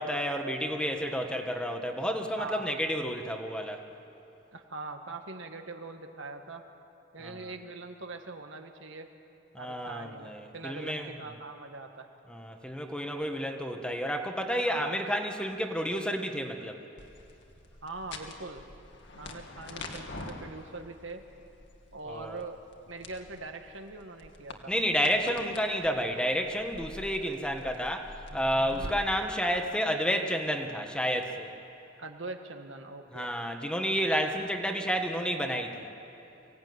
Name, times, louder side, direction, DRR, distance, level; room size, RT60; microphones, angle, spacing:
voice 1, 0.0-3.8 7.2-7.5 9.5-11.1 12.3-16.8 22.1-22.4 24.7-31.5 33.1-35.9, equal, 5° left, 4 dB, 1.4 m, -30 dB
voice 2, 2.4-2.8 4.5-6.6 7.1-9.1 9.6-12.1 14.6-14.9 17.8-18.7 19.2-21.2 21.9-22.6 22.9-24.7 28.7-29.0 32.0-33.3, right 3 dB, 70° right, 5 dB, 1.8 m, -42 dB
sound 1, 17.0-28.9, left 2 dB, 65° left, 2.1 m, -46 dB
24.0 x 17.0 x 9.5 m, 2.8 s
head